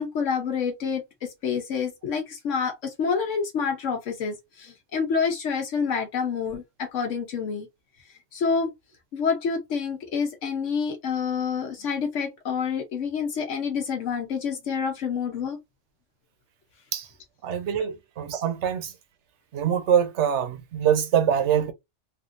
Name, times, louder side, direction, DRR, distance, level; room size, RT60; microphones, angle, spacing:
voice 1, 0.0-7.7 8.3-8.7 9.1-15.6, left 6 dB, 75° left, 1.1 m, -28 dB
voice 2, 17.4-18.9 19.5-21.7, right 9 dB, 70° right, 1.0 m, -24 dB
3.4 x 2.6 x 2.5 m
omnidirectional pair, 1.3 m